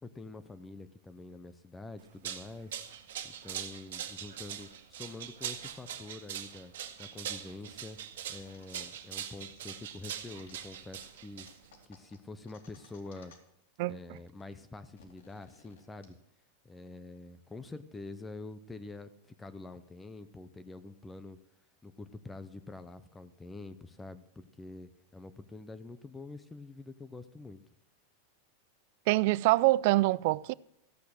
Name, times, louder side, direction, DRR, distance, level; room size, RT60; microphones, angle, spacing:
voice 1, 0.0-6.7 7.0-11.5 11.9-13.3 13.9-16.2 16.6-21.4 21.8-27.6, left 3 dB, 10° left, 0.6 m, -46 dB
sound 1, 2.0-11.8, right 10 dB, 85° right, 1.7 m, -42 dB
sound 2, 8.2-9.0 9.3-10.6 11.0-11.1 11.4-13.6 13.9-14.0 14.2-16.0, left 5 dB, 85° left, 3.2 m, -59 dB
voice 2, 29.1-30.5, right 19 dB, 55° right, 0.4 m, -25 dB
14.5 x 8.3 x 6.5 m
supercardioid pair, 160°, 0 cm